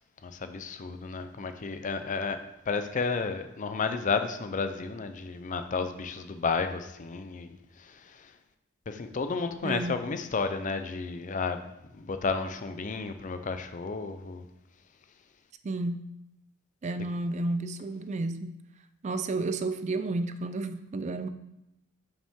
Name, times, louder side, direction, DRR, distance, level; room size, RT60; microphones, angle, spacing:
voice 1, 0.2-2.4 2.7-7.5 8.9-11.6 12.1-14.4, left 4 dB, 40° left, 9 dB, 0.5 m, -32 dB
voice 2, 9.6-10.0 15.6-16.0 16.8-18.5 19.0-21.3, right 2 dB, 35° right, 10 dB, 0.4 m, -31 dB
7.0 x 5.7 x 3.6 m, 0.86 s
head